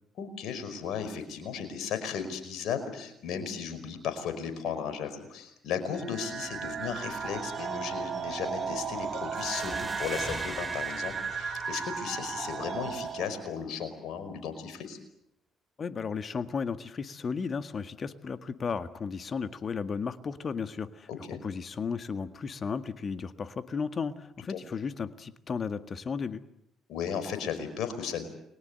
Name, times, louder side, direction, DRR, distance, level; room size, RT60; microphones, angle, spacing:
voice 1, 0.2-15.0 21.1-21.4 24.5-24.6 26.9-28.2, left 7 dB, 55° left, 8 dB, 5.2 m, -35 dB
sound 1, 5.9-13.5, right 6 dB, 40° right, 6.0 m, -35 dB
sound 2, 9.4-12.7, equal, ahead, 5.3 m, -42 dB
voice 2, 15.8-21.1 21.4-26.4, left 5 dB, 40° left, 11 dB, 1.8 m, -34 dB
30.0 x 22.5 x 8.0 m, 0.80 s
figure-of-eight pair, 45°, 0 cm